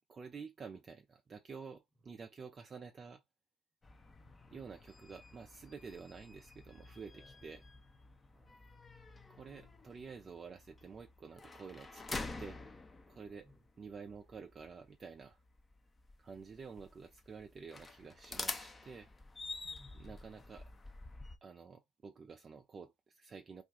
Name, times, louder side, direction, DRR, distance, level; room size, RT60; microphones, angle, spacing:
voice 1, 0.1-3.2 4.5-7.6 9.3-12.6 13.1-13.5 13.8-15.4 16.2-19.1 19.9-20.7 21.4-23.6, right 5 dB, 30° right, 0.4 m, -50 dB
sound 1, 3.8-21.4, left 3 dB, 20° left, 0.6 m, -49 dB
voice 2, 4.2-4.5 7.1-7.8 8.3-8.7 13.4-13.7 19.6-20.4, left 1 dB, 10° right, 1.0 m, -65 dB
2.5 x 2.3 x 3.9 m
hypercardioid pair, 70°, 0 cm